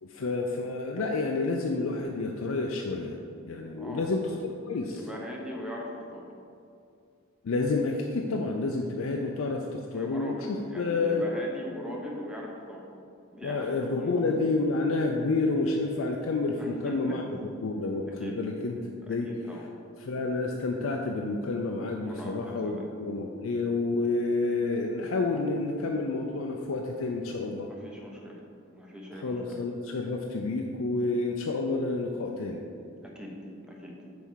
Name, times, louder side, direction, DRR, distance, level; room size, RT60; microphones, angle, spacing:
voice 1, 0.0-3.2 3.4-4.4 4.7-5.0 7.4-11.2 13.4-17.2 17.6-18.8 19.1-19.3 20.0-27.7 29.2-32.6, left 3 dB, 80° left, 1 dB, 0.5 m, -29 dB
voice 2, 3.8-4.1 4.9-6.2 9.6-12.9 13.3-14.3 16.6-17.2 18.2-18.4 19.1-19.6 22.1-22.9 27.7-28.4 28.7-29.6 33.0-33.3 33.6-33.9, left 1 dB, 5° right, -2 dB, 0.9 m, -41 dB
5.7 x 4.2 x 6.2 m, 2.5 s
head